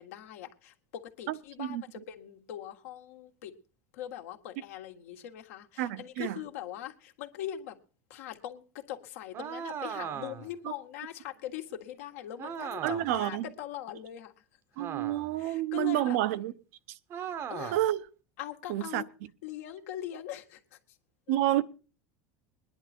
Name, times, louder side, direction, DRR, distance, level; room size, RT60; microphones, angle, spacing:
voice 1, 0.0-3.6 3.9-7.8 8.1-14.4 15.4-16.2 17.3-17.8 18.4-19.1 19.4-20.8 21.3-21.4, left 11 dB, 80° left, 1.7 m, -41 dB
voice 2, 1.3-2.0 5.8-6.3 12.8-13.5 14.8-16.5 17.7-18.0 18.7-19.0 21.3-21.6, right 14 dB, 75° right, 0.8 m, -29 dB
sound 1, 9.3-10.6 12.4-13.2 14.8-15.4 17.1-17.9, right 8 dB, 35° right, 0.8 m, -38 dB
20.5 x 10.5 x 4.4 m
supercardioid pair, 135°, 8 cm